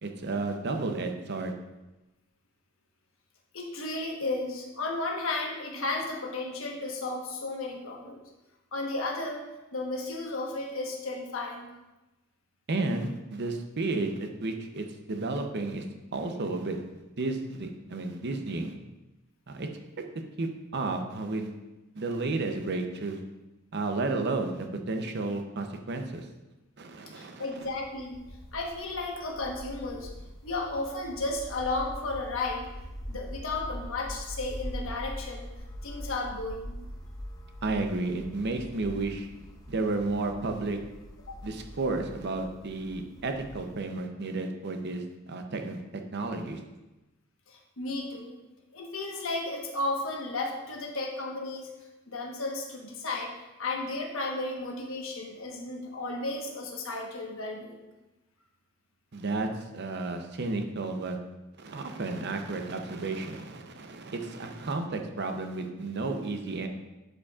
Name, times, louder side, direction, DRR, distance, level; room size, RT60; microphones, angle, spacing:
voice 1, 0.0-1.5 12.7-15.8 16.1-16.8 17.2-18.7 19.5-19.7 20.0-20.1 20.4-21.5 21.9-23.2 23.7-26.3 26.8-27.7 37.6-39.3 39.7-40.8 41.4-45.8 46.1-46.6 59.1-61.2 61.6-66.7, right 3 dB, 55° right, 5 dB, 0.7 m, -32 dB
voice 2, 3.5-8.2 8.7-11.7 27.1-28.1 28.5-30.1 30.4-32.7 33.1-35.5 35.8-36.8 47.5-48.4 48.7-51.7 52.1-53.3 53.6-57.8, left 2 dB, 75° left, 1 dB, 1.2 m, -33 dB
sound 1, 27.6-43.8, equal, 20° left, 0.7 m, -43 dB
11.0 x 5.1 x 2.4 m, 1.0 s
head